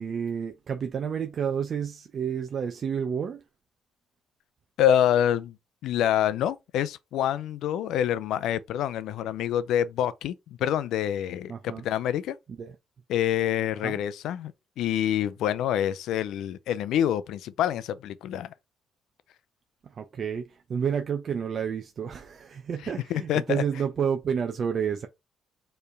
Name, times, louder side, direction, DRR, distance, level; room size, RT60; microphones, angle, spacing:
voice 1, 0.0-3.4 11.5-11.8 12.5-12.7 13.8-14.0 19.8-25.1, right 7 dB, 55° right, 0.5 m, -30 dB
voice 2, 4.8-5.5 5.8-12.4 13.1-14.5 14.8-18.5 23.1-23.6, left 10 dB, 85° left, 0.5 m, -26 dB
4.5 x 3.2 x 3.3 m
cardioid pair, 90°, 0 cm